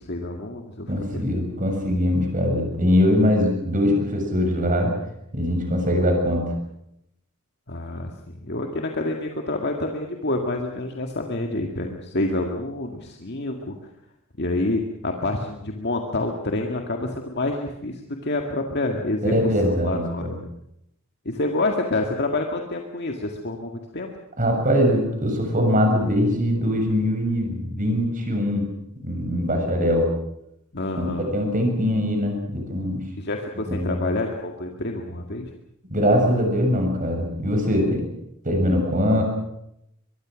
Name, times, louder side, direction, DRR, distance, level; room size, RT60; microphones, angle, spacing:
voice 1, 0.0-1.3 7.7-13.8 14.4-19.3 19.8-20.4 21.3-24.1 30.7-31.3 33.2-35.5, left 2 dB, 50° left, 2 dB, 2.0 m, -28 dB
voice 2, 0.9-4.9 5.3-6.5 19.2-20.4 24.4-28.7 29.0-30.1 31.0-33.0 33.7-34.0 35.9-38.1 38.4-39.2, equal, 35° right, 3 dB, 6.8 m, -22 dB
23.5 x 22.5 x 6.4 m, 0.79 s
head